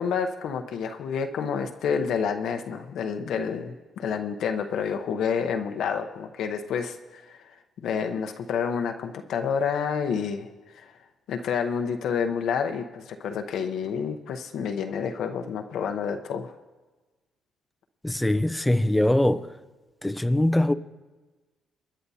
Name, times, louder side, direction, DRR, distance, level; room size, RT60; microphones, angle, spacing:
voice 1, 0.0-10.5 10.7-10.9 11.3-16.5, left 6 dB, 75° left, 0.8 m, -29 dB
voice 2, 18.0-19.5 20.0-20.7, left 1 dB, 5° left, 0.6 m, -22 dB
26.0 x 10.0 x 2.8 m
cardioid pair, 90°, 0 cm